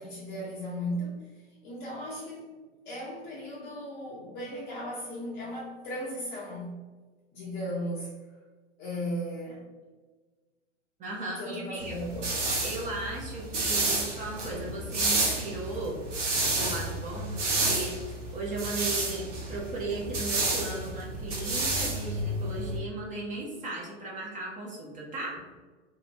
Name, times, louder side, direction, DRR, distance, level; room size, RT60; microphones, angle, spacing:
voice 1, 0.0-2.5 2.8-6.8 7.3-8.1 8.8-9.6 11.4-12.3, equal, 30° left, -5 dB, 0.7 m, -36 dB
voice 2, 11.0-12.0 12.6-16.0 16.5-25.4, right 2 dB, 20° right, -4 dB, 0.8 m, -36 dB
sound 1, 11.8-22.8, right 2 dB, 75° right, 1.2 m, -30 dB
3.2 x 2.9 x 2.8 m, 1.3 s
figure-of-eight pair, 105°, 36 cm